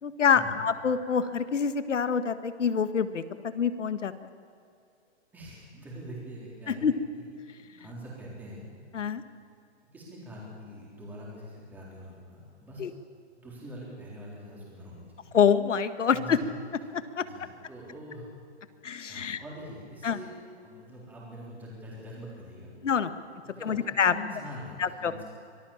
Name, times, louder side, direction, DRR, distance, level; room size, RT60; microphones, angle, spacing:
voice 1, 0.0-4.1 6.7-6.9 8.9-9.2 12.8-12.9 15.3-16.4 16.9-17.3 18.8-19.4 20.0-20.2 22.8-23.1 23.6-24.1 24.8-25.1, left 7 dB, 90° left, 12 dB, 1.7 m, -26 dB
voice 2, 5.3-6.9 7.2-7.3 7.8-8.6 9.9-12.8 13.4-15.3 16.1-16.4 17.2-18.3 19.1-20.3 20.6-22.7 23.4-25.3, equal, 5° right, -4 dB, 3.8 m, -44 dB
25.0 x 19.5 x 7.3 m, 2.5 s
hypercardioid pair, 175°, 35 cm